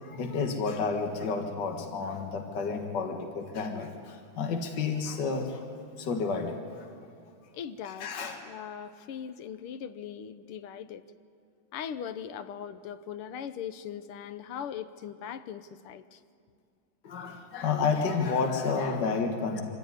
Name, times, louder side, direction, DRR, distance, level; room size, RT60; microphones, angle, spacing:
voice 1, 0.0-5.6 6.0-6.9 8.0-8.4 17.0-19.6, left 5 dB, 55° left, 4 dB, 2.1 m, -30 dB
voice 2, 7.5-8.1 8.4-11.0 11.7-16.2 17.7-17.9, left 8 dB, 90° left, 11 dB, 1.7 m, -40 dB
24.5 x 14.5 x 9.7 m, 2.4 s
omnidirectional pair, 2.4 m